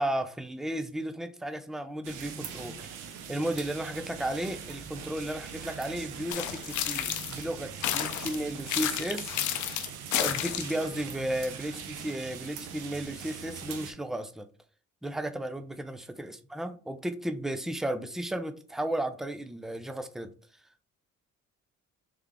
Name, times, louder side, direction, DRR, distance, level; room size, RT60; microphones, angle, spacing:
voice 1, 0.0-2.9 3.3-9.3 10.1-14.5 15.0-20.3, right 1 dB, ahead, 0.5 m, -34 dB
sound 1, 2.0-13.9, right 7 dB, 90° right, 0.8 m, -42 dB
sound 2, 6.3-7.4 7.8-10.8, left 11 dB, 75° left, 0.6 m, -31 dB
3.6 x 3.4 x 3.3 m
cardioid pair, 90°, 30 cm